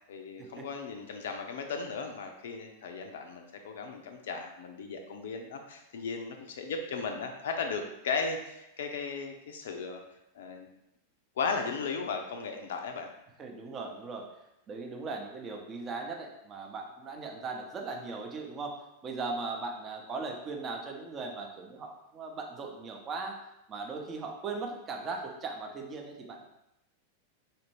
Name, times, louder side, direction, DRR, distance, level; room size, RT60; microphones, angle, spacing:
voice 1, 0.1-10.0 10.3-10.7 11.4-13.1, left 5 dB, 60° left, 4 dB, 0.4 m, -36 dB
voice 2, 13.4-14.3 14.7-23.4 23.7-26.5, right 3 dB, 25° right, 2 dB, 0.7 m, -38 dB
4.1 x 2.5 x 3.1 m, 0.85 s
figure-of-eight pair, 90°, 0 cm